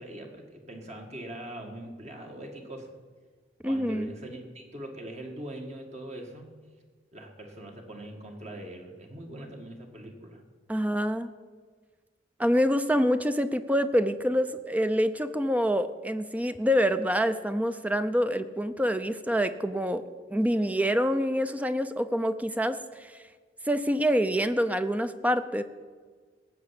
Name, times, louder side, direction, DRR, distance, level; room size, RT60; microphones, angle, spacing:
voice 1, 0.0-2.9 3.6-6.5 7.1-10.4, right 1 dB, 40° right, 2 dB, 1.9 m, -42 dB
voice 2, 3.6-4.1 10.7-11.3 12.4-20.0 20.3-23.1 23.7-25.6, equal, 10° right, 11 dB, 0.6 m, -26 dB
17.5 x 7.0 x 8.3 m, 1.5 s
head